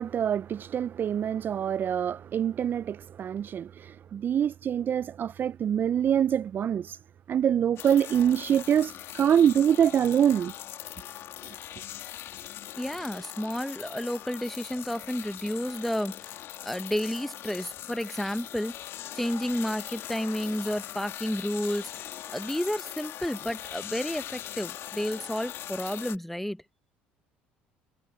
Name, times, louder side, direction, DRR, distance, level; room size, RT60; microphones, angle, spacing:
voice 1, 0.0-7.0 7.3-10.5, right 9 dB, 45° right, 0.4 m, -25 dB
sound 1, 7.8-26.2, left 12 dB, 60° left, 2.4 m, -41 dB
voice 2, 12.8-16.4 16.6-18.8 19.1-26.6, equal, 5° left, 1.0 m, -31 dB
hypercardioid pair, 65°, 5 cm